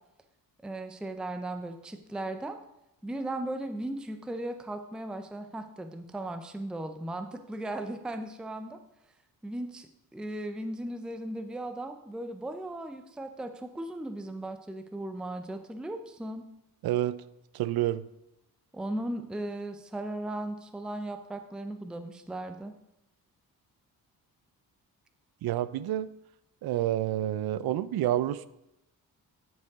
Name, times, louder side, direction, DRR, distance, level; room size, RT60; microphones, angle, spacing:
voice 1, 0.6-2.6 3.0-8.8 9.4-16.5 18.7-22.7, right 1 dB, ahead, 8 dB, 0.5 m, -37 dB
voice 2, 16.8-17.2 17.5-18.0 25.4-26.1 26.6-28.5, right 13 dB, 80° right, 17 dB, 0.5 m, -28 dB
11.5 x 5.5 x 3.6 m, 0.87 s
cardioid pair, 110°, 36 cm